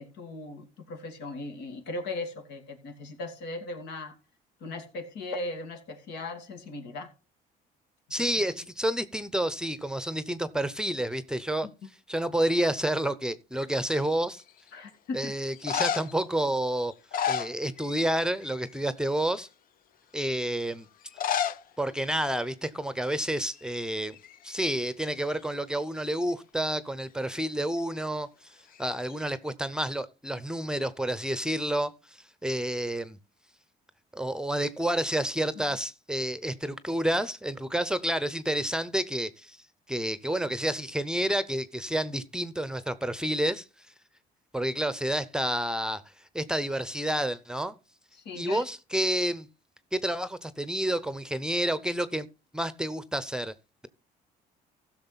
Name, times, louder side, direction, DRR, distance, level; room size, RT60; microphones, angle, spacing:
voice 1, 0.0-4.2 4.6-7.1 8.3-8.6 11.6-11.7 14.7-15.4 35.7-35.8 48.1-48.6, left 2 dB, 85° left, 2.7 m, -38 dB
voice 2, 8.1-11.7 12.1-14.4 15.1-16.9 17.3-19.5 20.1-20.9 21.8-24.2 24.4-33.2 34.1-39.6 39.9-43.7 44.5-46.0 46.3-47.7 48.3-49.5 49.9-52.3 52.5-53.5, right 1 dB, 5° right, 0.7 m, -29 dB
sound 1, 14.0-14.5 15.5-16.2 16.9-18.1 18.4-18.8 19.4-19.5 21.0-21.6 21.9-22.0 22.2-22.3 23.1-23.3 23.6-24.8 28.7-29.3, left 8 dB, 55° left, 0.7 m, -32 dB
15.5 x 6.4 x 4.1 m
cardioid pair, 110°, 17 cm